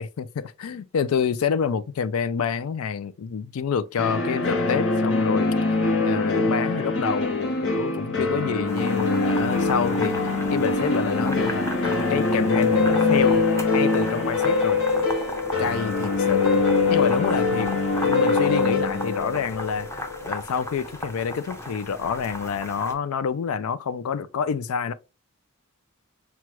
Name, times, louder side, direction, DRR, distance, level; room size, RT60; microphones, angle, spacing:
voice 1, 0.0-11.6 12.1-13.5 13.7-14.8 15.6-16.6 16.9-17.7 18.0-24.9, left 6 dB, 90° left, 0.4 m, -28 dB
sound 1, 4.0-20.7, left 3 dB, 60° left, 1.2 m, -23 dB
sound 2, 8.7-22.9, left 1 dB, 15° left, 0.7 m, -36 dB
6.0 x 2.3 x 2.9 m
head